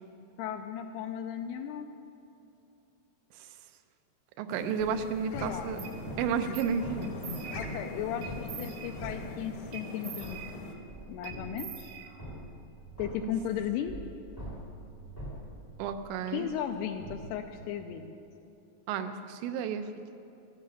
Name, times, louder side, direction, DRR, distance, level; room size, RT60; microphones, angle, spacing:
voice 1, 0.4-1.9 5.3-5.7 7.6-10.4 11.1-11.9 13.0-14.0 16.3-18.1, left 9 dB, 80° left, 6 dB, 2.4 m, -35 dB
voice 2, 4.4-5.8 6.2-7.1 13.2-13.3 15.8-16.6 18.9-19.9, right 6 dB, 85° right, 8 dB, 3.1 m, -32 dB
sound 1, 4.5-10.7, left 2 dB, 65° left, 1.9 m, -42 dB
sound 2, 4.8-9.9 10.2-17.6, equal, 35° left, 0.3 m, -45 dB
sound 3, 5.8-6.0 6.5-6.7 7.0-7.8 8.2-9.2 9.7-10.9 11.2-12.5, right 8 dB, 70° right, 1.8 m, -45 dB
13.5 x 13.5 x 5.7 m, 2.8 s
omnidirectional pair, 5.1 m